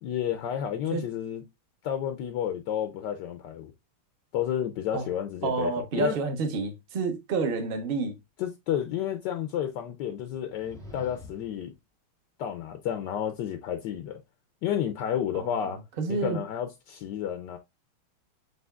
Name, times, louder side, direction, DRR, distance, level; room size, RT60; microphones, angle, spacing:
voice 1, 0.0-1.4 1.8-3.7 4.3-6.1 8.4-11.7 12.4-14.2 14.6-15.8 16.1-17.6, left 10 dB, 75° left, 1.0 m, -31 dB
voice 2, 5.4-8.2 15.3-16.4, right 3 dB, 50° right, 0.7 m, -29 dB
sound 1, 10.5-11.7, left 3 dB, 5° left, 0.3 m, -46 dB
8.0 x 2.7 x 2.2 m
omnidirectional pair, 2.4 m